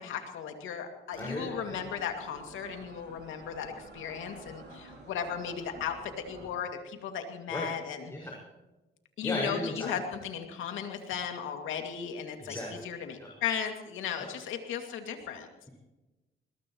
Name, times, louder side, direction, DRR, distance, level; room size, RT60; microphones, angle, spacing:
voice 1, 0.0-6.0 6.3-8.1 9.2-15.5, left 8 dB, 85° left, 5 dB, 2.4 m, -36 dB
sound 1, 1.1-6.5, right 3 dB, 60° right, 6.4 m, -50 dB
voice 2, 1.2-1.8 7.5-7.7 8.1-8.4 9.2-10.0 12.4-12.9 13.2-13.3, left 1 dB, 15° left, -3 dB, 5.7 m, -36 dB
21.0 x 20.5 x 3.1 m, 1.0 s
cardioid pair, 90°, 20 cm